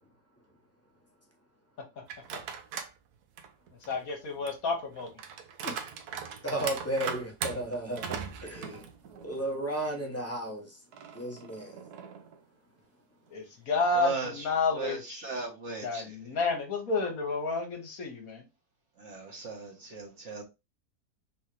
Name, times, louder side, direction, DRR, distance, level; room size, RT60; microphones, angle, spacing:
sound 1, 2.1-3.0 3.4-9.5 9.8-9.9 10.9-12.4, right 7 dB, 80° right, 1.2 m, -40 dB
voice 1, 3.8-5.1 13.3-15.2 15.8-18.4, left 3 dB, 65° left, 1.5 m, -30 dB
voice 2, 6.4-8.9 9.2-10.8 11.1-11.8, right 1 dB, 10° left, 0.9 m, -34 dB
voice 3, 13.9-14.5 14.7-16.2 19.0-20.4, right 4 dB, 50° right, 1.5 m, -37 dB
4.0 x 3.6 x 3.0 m
omnidirectional pair, 1.6 m